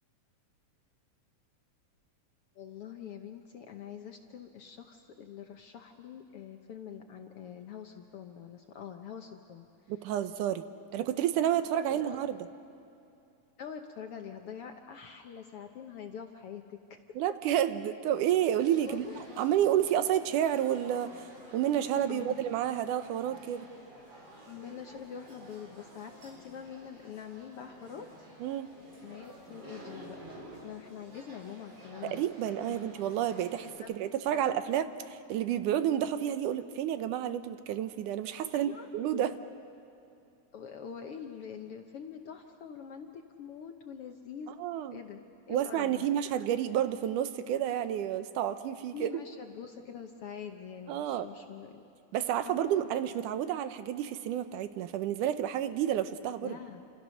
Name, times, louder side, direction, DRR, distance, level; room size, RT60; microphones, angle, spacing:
voice 1, 2.6-9.7 11.9-12.2 13.6-17.0 18.8-19.1 22.1-22.4 24.5-28.1 29.0-30.2 30.6-32.2 32.8-33.0 33.8-33.9 34.3-34.7 38.5-39.3 40.5-44.5 44.9-46.1 48.9-51.8 52.4-52.9 56.4-56.8, left 7 dB, 65° left, 5 dB, 1.5 m, -45 dB
voice 2, 9.9-10.6 10.9-12.4 17.2-19.0 19.4-21.3 21.5-23.7 28.4-28.7 32.0-39.3 44.6-45.0 45.5-49.1 50.9-51.3 52.1-56.6, right 11 dB, 80° right, 11 dB, 2.4 m, -30 dB
sound 1, 18.5-33.7, right 1 dB, 50° right, 5.5 m, -51 dB
29.5 x 27.5 x 6.4 m, 2.6 s
omnidirectional pair, 3.6 m